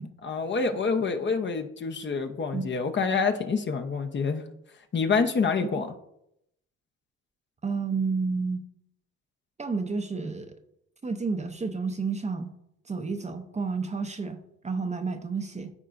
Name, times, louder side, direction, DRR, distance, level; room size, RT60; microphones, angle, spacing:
voice 1, 0.2-4.4 4.9-5.9, left 5 dB, 40° left, 5 dB, 0.8 m, -27 dB
voice 2, 7.6-8.7 9.6-10.6 11.0-12.5 12.9-15.7, right 4 dB, 25° right, 7 dB, 0.7 m, -31 dB
13.5 x 4.6 x 2.6 m, 0.79 s
cardioid pair, 90°, 30 cm